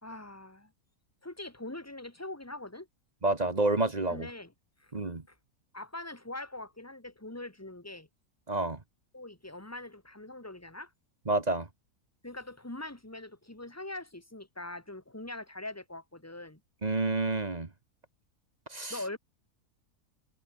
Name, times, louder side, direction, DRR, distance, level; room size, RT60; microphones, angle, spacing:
voice 1, 0.0-0.7 1.2-2.9 4.1-4.5 4.8-4.9 5.3-5.4 5.7-8.1 9.1-10.9 12.2-16.6 18.9-19.2, left 2 dB, 10° left, 2.6 m, -42 dB
voice 2, 3.2-4.3 4.9-5.2 8.5-8.8 11.3-11.7 16.8-17.7 18.7-19.0, right 2 dB, 30° right, 1.5 m, -29 dB
omnidirectional pair, 1.6 m